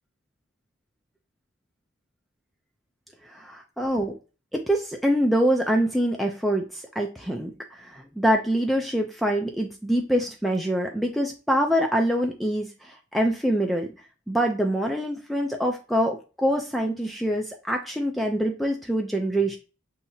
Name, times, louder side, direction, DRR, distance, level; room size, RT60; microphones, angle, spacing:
voice 1, 3.2-4.1 4.5-13.9 14.3-19.6, equal, ahead, 2 dB, 0.4 m, -25 dB
7.1 x 2.8 x 2.7 m, 0.32 s
head